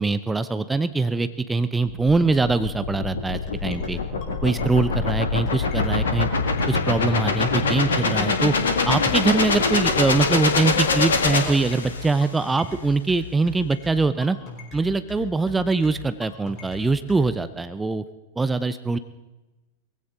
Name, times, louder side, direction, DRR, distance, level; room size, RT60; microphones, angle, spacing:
voice 1, 0.0-4.0 4.4-6.3 6.7-8.5 8.9-14.4 14.7-18.0 18.4-19.0, right 3 dB, 10° right, 12 dB, 0.6 m, -23 dB
sound 1, 1.9-12.2, left 4 dB, 70° left, 1.9 m, -24 dB
sound 2, 3.5-17.2, left 3 dB, 35° left, 4.8 m, -40 dB
21.5 x 16.0 x 3.8 m, 1.1 s
figure-of-eight pair, 90°, 0 cm